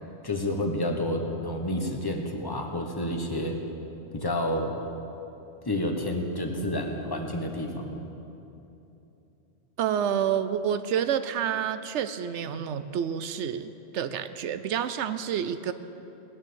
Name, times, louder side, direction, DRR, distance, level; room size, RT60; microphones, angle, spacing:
voice 1, 0.2-3.6 4.1-4.7 5.6-8.0, left 1 dB, 20° left, 3 dB, 1.3 m, -29 dB
voice 2, 9.8-15.7, right 8 dB, 90° right, 11 dB, 0.9 m, -29 dB
18.5 x 9.8 x 7.1 m, 2.9 s
omnidirectional pair, 1.1 m